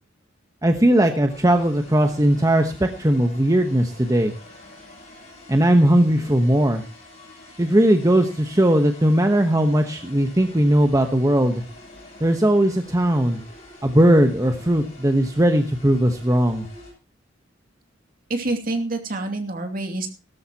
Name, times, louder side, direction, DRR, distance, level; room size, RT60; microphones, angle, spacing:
voice 1, 0.6-4.3 5.5-6.8 7.6-11.6 12.2-13.4 13.8-16.7, right 1 dB, 20° right, 5 dB, 1.1 m, -18 dB
sound 1, 1.3-16.9, left 2 dB, 35° left, 7.9 m, -46 dB
voice 2, 18.3-20.1, right 2 dB, 50° right, 4 dB, 2.6 m, -27 dB
17.5 x 13.0 x 2.9 m, 0.30 s
head